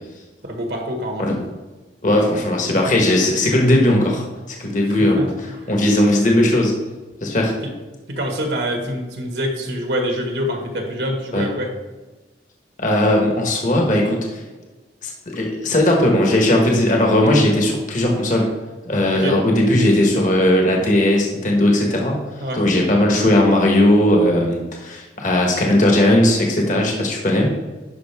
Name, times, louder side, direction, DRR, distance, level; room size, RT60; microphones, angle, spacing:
voice 1, 0.4-1.4 4.9-5.3 5.6-5.7 7.6-7.7 8.1-11.7 19.1-19.4 22.4-22.6, equal, 70° right, 2 dB, 1.7 m, -25 dB
voice 2, 2.0-6.8 7.2-7.5 11.3-11.5 12.8-14.4 15.0-18.5 18.8-22.2 22.5-27.5, left 1 dB, 45° left, 0 dB, 1.3 m, -17 dB
11.0 x 5.4 x 3.5 m, 1.2 s
head